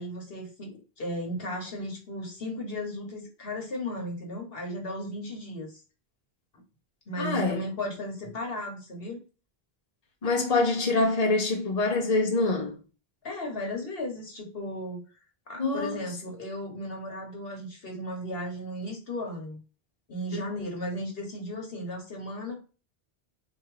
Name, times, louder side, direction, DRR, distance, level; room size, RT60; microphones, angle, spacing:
voice 1, 0.0-5.8 7.1-9.2 13.2-15.0 15.5-19.6 20.1-22.6, left 1 dB, 70° left, 1.5 m, -35 dB
voice 2, 7.2-7.6 10.2-12.8 15.6-16.0 20.3-20.4, left 3 dB, 40° left, 1.1 m, -25 dB
3.6 x 3.0 x 4.8 m
omnidirectional pair, 1.0 m